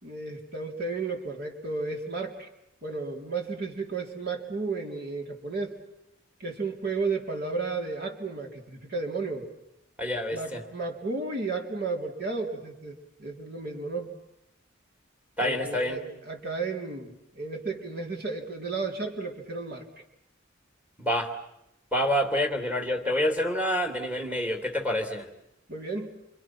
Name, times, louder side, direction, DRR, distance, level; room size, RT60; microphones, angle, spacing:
voice 1, 0.0-2.5 2.8-5.8 6.4-9.5 10.3-14.1 15.4-19.9 25.7-26.1, right 3 dB, 55° right, 3 dB, 3.7 m, -33 dB
voice 2, 10.0-10.6 15.4-16.0 21.0-21.3 21.9-25.3, equal, 10° right, 4 dB, 3.0 m, -27 dB
28.5 x 25.5 x 6.1 m, 0.85 s
head